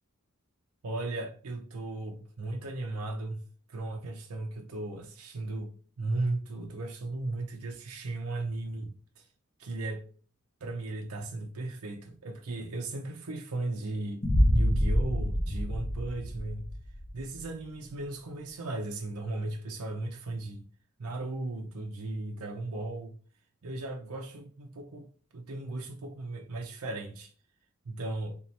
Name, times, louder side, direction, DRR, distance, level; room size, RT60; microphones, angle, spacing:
voice 1, 0.8-3.4 3.7-9.3 9.6-10.0 10.6-16.6 17.1-20.6 21.0-23.1 23.6-25.1 25.3-27.3 27.9-28.3, right 2 dB, 85° right, 0.6 m, -36 dB
Boom, 14.2-17.2, equal, 30° left, 0.6 m, -26 dB
3.4 x 2.8 x 3.2 m
head